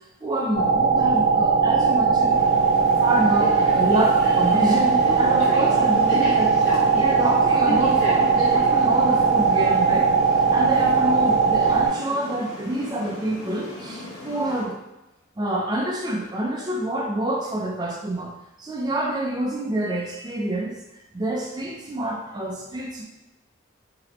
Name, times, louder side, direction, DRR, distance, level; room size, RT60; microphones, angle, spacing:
voice 1, 0.2-2.4 3.0-6.6 6.9-10.1 10.5-14.8 15.4-20.8 21.1-23.0, right 1 dB, 20° right, -1 dB, 0.5 m, -27 dB
sound 1, 0.5-11.9, right 5 dB, 50° left, 0.9 m, -19 dB
sound 2, 2.3-14.6, left 2 dB, 70° left, 1.0 m, -34 dB
3.0 x 3.0 x 3.0 m, 0.97 s
head